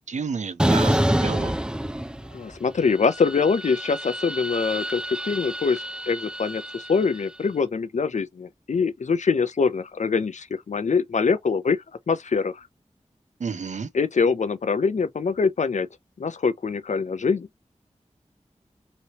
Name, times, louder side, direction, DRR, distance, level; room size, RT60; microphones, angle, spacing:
voice 1, 0.1-1.7 13.4-13.9, right 5 dB, 75° right, 0.5 m, -31 dB
sound 1, 0.6-2.6 2.9-7.2, right 1 dB, 5° right, 0.3 m, -27 dB
voice 2, 2.3-12.7 13.9-15.9 16.2-17.6, left 5 dB, 75° left, 0.5 m, -24 dB
3.1 x 2.8 x 2.8 m
wide cardioid pair, 75°, 12 cm